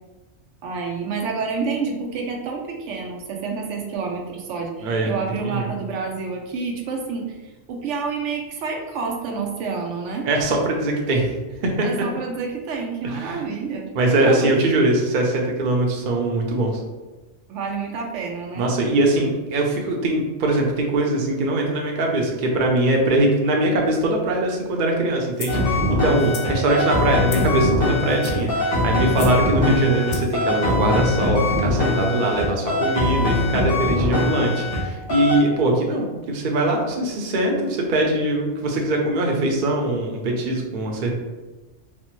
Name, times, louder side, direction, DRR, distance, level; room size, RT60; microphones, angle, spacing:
voice 1, 0.6-10.3 11.8-14.5 17.5-18.8 33.9-34.5, right 4 dB, 85° right, 1 dB, 0.9 m, -29 dB
voice 2, 4.8-5.1 5.4-5.7 10.2-11.3 11.6-12.1 13.2-13.4 13.9-16.8 18.6-41.1, right 2 dB, 55° right, 0 dB, 0.7 m, -22 dB
sound 1, 25.4-25.6 26.2-26.5 27.3-27.6 28.1-28.5 29.1-29.4 30.1-30.4, left 5 dB, 65° left, 0.7 m, -36 dB
sound 2, 25.5-34.8 35.1-35.4, left 1 dB, 80° left, 1.4 m, -22 dB
4.2 x 2.0 x 3.0 m, 1.1 s
omnidirectional pair, 1.2 m